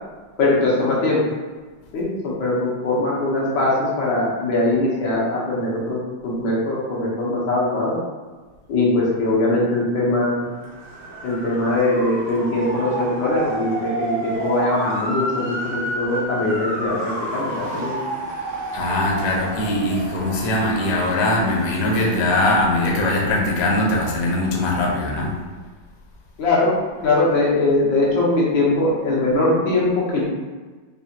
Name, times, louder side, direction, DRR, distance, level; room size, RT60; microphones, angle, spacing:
voice 1, 0.4-1.2 1.9-8.0 8.7-10.5 11.2-18.0 26.4-26.7 27.0-30.3, left 2 dB, 90° left, -5 dB, 1.8 m, -21 dB
Motor vehicle (road) / Siren, 10.5-23.2, right 1 dB, 70° right, 1.4 m, -30 dB
voice 2, 18.7-25.3, left 1 dB, 60° left, -2 dB, 1.1 m, -21 dB
4.8 x 2.5 x 2.8 m, 1.3 s
omnidirectional pair, 2.1 m